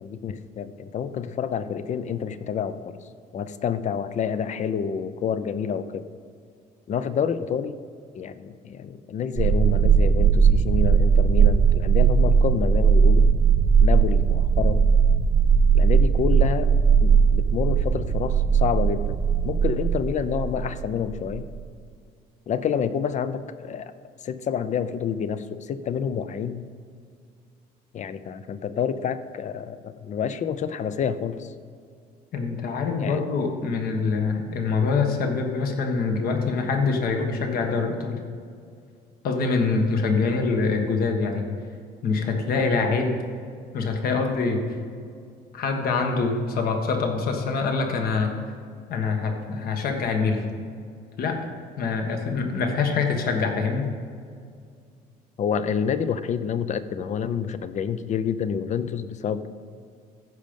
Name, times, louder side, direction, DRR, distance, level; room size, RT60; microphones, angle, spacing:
voice 1, 0.0-2.8 3.3-6.0 6.9-7.8 8.1-13.3 13.8-14.9 15.7-16.7 17.0-19.1 19.4-21.5 22.5-23.9 24.2-26.7 27.9-31.5 33.0-33.2 55.4-59.5, left 7 dB, 45° left, 13 dB, 0.6 m, -28 dB
sound 1, 9.4-21.6, right 6 dB, 35° right, 0.5 m, -19 dB
voice 2, 32.3-38.2 39.2-41.4 42.0-43.2 43.7-44.6 45.5-48.3 48.9-50.4 51.2-51.4 51.8-53.9, left 4 dB, 60° left, 3 dB, 1.5 m, -24 dB
14.5 x 5.2 x 5.3 m, 2.2 s
cardioid pair, 110°, 17 cm